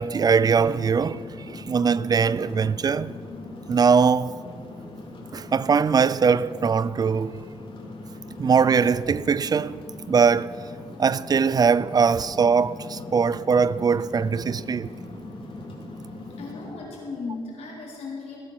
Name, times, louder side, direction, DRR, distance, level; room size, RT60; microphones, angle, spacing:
voice 1, 0.0-3.2 3.7-4.4 5.3-7.4 8.4-10.5 11.0-14.9, right 5 dB, 35° right, 0.4 m, -21 dB
sound 1, 0.7-16.7, left 2 dB, 55° left, 3.1 m, -40 dB
voice 2, 16.3-18.4, left 4 dB, 85° left, 4.6 m, -36 dB
18.0 x 10.0 x 6.3 m
cardioid pair, 100°, 11 cm